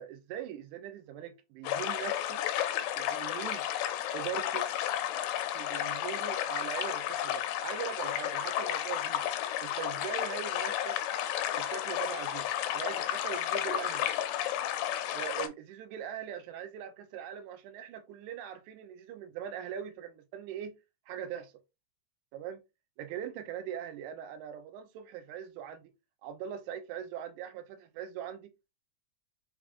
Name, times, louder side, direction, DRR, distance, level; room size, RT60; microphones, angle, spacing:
voice 1, 0.0-2.4 3.0-3.6 4.1-4.6 5.5-9.3 9.6-11.0 11.6-14.1 15.1-20.7 21.1-21.5 22.3-22.6 23.0-25.9 26.2-28.5, right 9 dB, 80° right, 1.8 m, -41 dB
sound 1, 1.6-15.5, left 11 dB, 90° left, 2.2 m, -32 dB
5.8 x 2.4 x 2.4 m
omnidirectional pair, 3.8 m